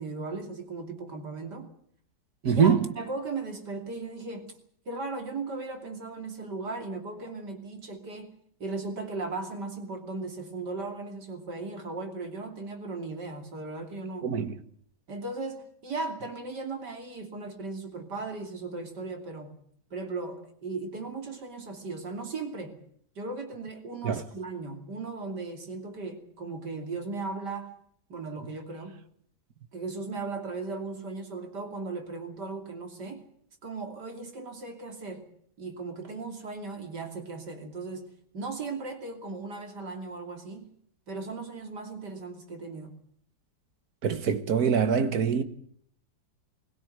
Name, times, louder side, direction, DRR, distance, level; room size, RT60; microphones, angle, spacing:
voice 1, 0.0-1.7 2.4-4.5 4.9-14.3 15.1-19.5 19.9-22.8 23.2-27.7 28.1-29.0 29.7-33.2 33.6-35.2 35.6-40.7 41.1-42.9, right 3 dB, 80° right, 3.6 m, -37 dB
voice 2, 2.4-2.9 14.2-14.5 24.0-24.2 44.0-45.4, right 7 dB, 65° right, 1.8 m, -24 dB
21.0 x 17.0 x 9.2 m
omnidirectional pair, 1.8 m